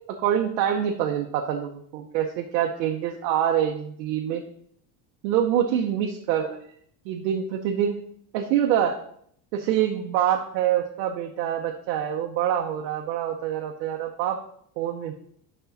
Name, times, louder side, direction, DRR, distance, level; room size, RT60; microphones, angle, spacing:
voice 1, 0.2-4.4 5.2-6.6 7.1-7.9 8.3-8.9 9.5-14.4 14.8-15.1, right 10 dB, 90° right, 2 dB, 0.9 m, -25 dB
8.1 x 5.5 x 4.0 m, 0.67 s
cardioid pair, 140°, 49 cm